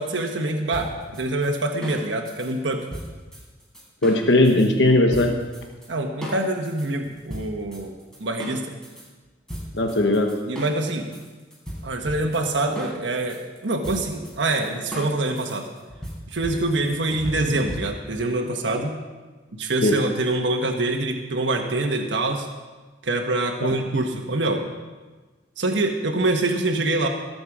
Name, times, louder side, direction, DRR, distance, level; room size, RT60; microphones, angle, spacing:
voice 1, 0.0-2.9 5.9-8.7 10.5-11.1 11.8-15.7 16.3-19.0 19.6-22.5 23.0-24.6 25.6-27.1, right 2 dB, 90° right, 2 dB, 1.3 m, -25 dB
sound 1, 0.7-4.7 5.1-5.9 6.2-9.1 9.5-18.2, equal, 5° left, 4.0 m, -37 dB
voice 2, 4.0-5.3 9.7-10.4 19.8-20.0 23.6-23.7, left 1 dB, 80° left, 4 dB, 1.2 m, -18 dB
22.5 x 7.8 x 4.9 m, 1.3 s
head